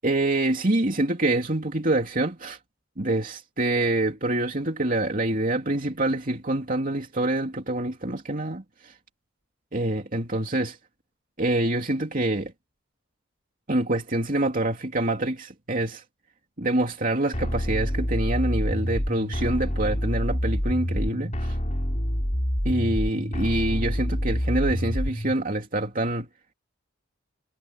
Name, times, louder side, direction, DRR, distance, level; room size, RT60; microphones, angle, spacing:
voice 1, 0.0-2.6 3.0-8.9 9.7-10.8 11.4-12.5 13.7-16.0 16.6-21.6 22.6-26.3, right 1 dB, 40° right, 2.8 m, -26 dB
sound 1, 17.3-25.3, equal, 35° left, 4.6 m, -27 dB
head